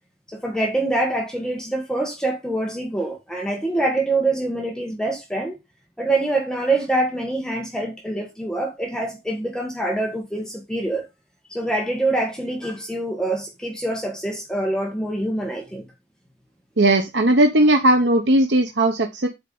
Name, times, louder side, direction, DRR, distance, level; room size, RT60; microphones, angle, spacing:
voice 1, 0.3-5.6 6.0-11.0 11.5-15.8, right 2 dB, 5° left, 1.5 m, -25 dB
voice 2, 16.8-19.3, right 1 dB, 80° right, 1.1 m, -17 dB
8.2 x 4.6 x 5.4 m
head